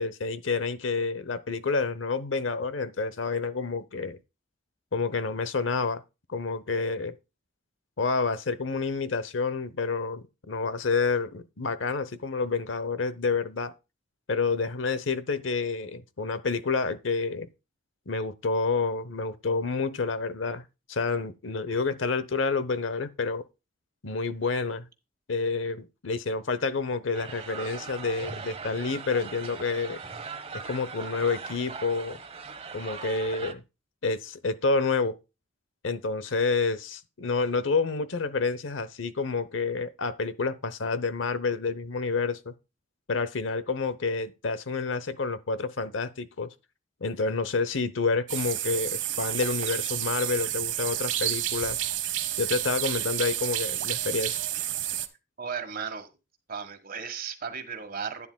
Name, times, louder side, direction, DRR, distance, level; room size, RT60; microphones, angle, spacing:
voice 1, 0.0-4.2 4.9-6.0 6.3-7.1 8.0-13.7 14.3-17.5 18.1-20.6 20.9-23.4 24.0-24.9 25.3-30.0 30.5-32.2 32.7-33.6 34.0-35.2 35.8-42.5 43.1-46.5 47.0-51.8 52.4-54.4, left 4 dB, 85° left, 0.9 m, -29 dB
sound 1, 27.1-33.5, right 5 dB, 30° right, 0.9 m, -40 dB
sound 2, 48.3-55.1, right 13 dB, 75° right, 1.0 m, -30 dB
voice 2, 55.4-56.2 56.5-58.3, right 6 dB, 50° right, 1.5 m, -35 dB
11.0 x 9.8 x 2.3 m
head